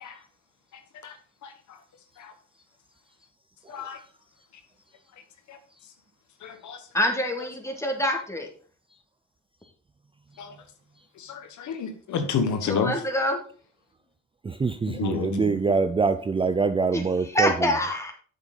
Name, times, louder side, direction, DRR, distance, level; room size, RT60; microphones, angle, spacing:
voice 1, 6.4-6.8 10.4-10.5 11.3-12.9 15.0-15.6, left 6 dB, 70° left, 7 dB, 1.5 m, -29 dB
voice 2, 6.9-8.5 12.6-13.4 16.9-18.1, equal, 10° left, 2 dB, 2.3 m, -26 dB
voice 3, 14.4-17.7, right 4 dB, 20° right, 12 dB, 0.4 m, -25 dB
7.5 x 7.2 x 4.0 m, 0.42 s
cardioid pair, 90°, 30 cm